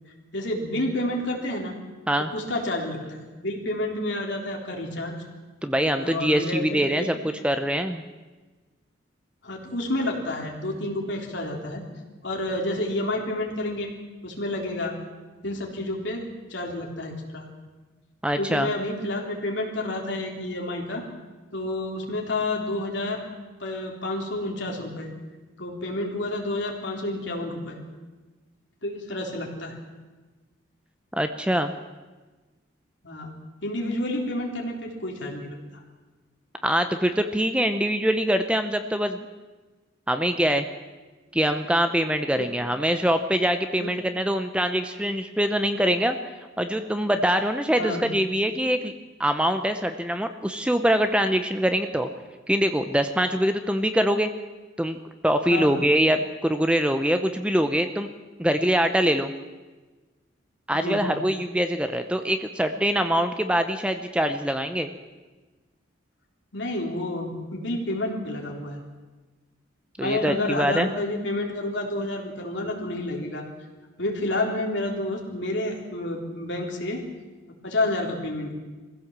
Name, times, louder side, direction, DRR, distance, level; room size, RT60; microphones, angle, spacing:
voice 1, 0.3-1.8 2.3-5.2 6.0-7.2 9.4-11.9 12.2-14.0 14.2-15.0 15.4-17.5 18.4-21.0 21.5-23.2 23.6-25.1 25.6-27.8 28.8-29.8 33.0-33.4 33.6-35.8 42.4-42.5 43.8-44.0 47.8-48.1 55.5-55.9 60.7-61.1 66.5-68.8 70.0-73.5 74.0-77.0 77.6-78.6, left 1 dB, 60° left, 0 dB, 3.7 m, -29 dB
voice 2, 5.6-8.0 18.2-18.7 31.1-31.7 36.6-39.3 40.1-40.7 41.3-46.2 46.6-48.9 49.2-52.1 52.5-54.3 54.8-55.0 55.2-58.1 58.4-59.3 60.7-64.9 70.0-70.9, equal, 5° right, 8 dB, 0.7 m, -24 dB
22.0 x 15.5 x 7.5 m, 1.3 s
head